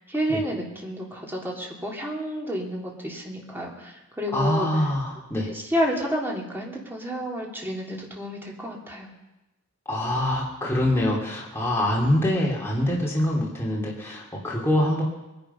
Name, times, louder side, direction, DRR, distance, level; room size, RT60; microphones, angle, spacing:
voice 1, 0.1-4.7 5.4-9.1, equal, 10° right, -2 dB, 3.1 m, -30 dB
voice 2, 4.3-5.5 9.8-15.0, left 1 dB, 10° left, -4 dB, 3.1 m, -24 dB
23.0 x 10.5 x 5.7 m, 1.0 s
head